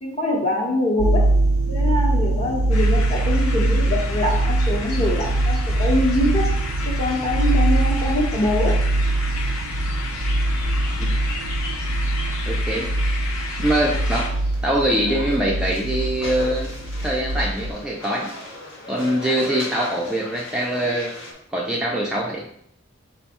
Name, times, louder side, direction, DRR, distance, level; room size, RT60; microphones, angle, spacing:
voice 1, 0.0-1.3 1.7-6.5 6.8-8.8, left 1 dB, 30° left, -1 dB, 0.9 m, -24 dB
sound 1, 1.0-17.7, right 2 dB, 85° right, 0.5 m, -22 dB
sound 2, 2.7-14.3, left 4 dB, 90° left, 0.8 m, -33 dB
voice 2, 12.5-12.9 13.6-14.3 14.6-16.7 17.0-18.3 18.9-21.1 21.5-22.4, right 1 dB, 5° right, -4 dB, 0.4 m, -23 dB
sound 3, 13.6-21.3, left 1 dB, 65° left, 1.0 m, -38 dB
5.2 x 2.2 x 4.2 m, 0.70 s
head